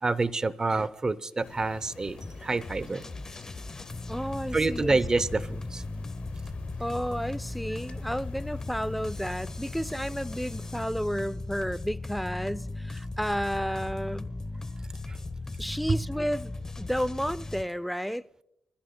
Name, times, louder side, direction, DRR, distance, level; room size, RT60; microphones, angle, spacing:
voice 1, 0.0-3.0 4.5-5.8 15.1-15.2 15.9-16.0, right 3 dB, 30° right, 0.7 m, -27 dB
sound 1, 1.4-10.8, left 6 dB, 60° left, 0.8 m, -47 dB
sound 2, 2.2-17.6, left 2 dB, 25° left, 0.9 m, -37 dB
voice 2, 4.1-5.0 6.8-14.3 15.6-18.4, equal, ahead, 0.4 m, -32 dB
26.0 x 14.5 x 2.2 m
cardioid pair, 80°, 2 cm